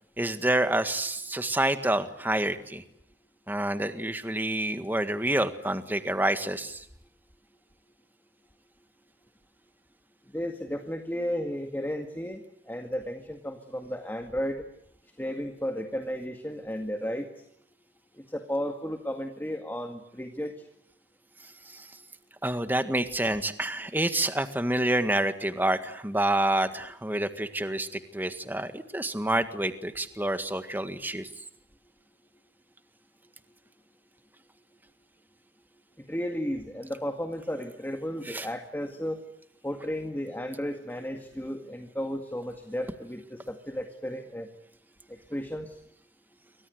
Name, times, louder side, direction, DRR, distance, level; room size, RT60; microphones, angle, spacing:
voice 1, 0.2-2.8 3.5-6.9 21.7-21.9 22.4-31.3 38.3-38.5, right 1 dB, 10° right, 9 dB, 1.7 m, -28 dB
voice 2, 10.3-12.4 12.7-14.6 15.2-17.3 18.3-20.5 36.1-39.2 39.6-44.5 45.3-45.7, equal, 10° left, 5 dB, 2.0 m, -33 dB
29.0 x 24.5 x 8.0 m, 0.72 s
head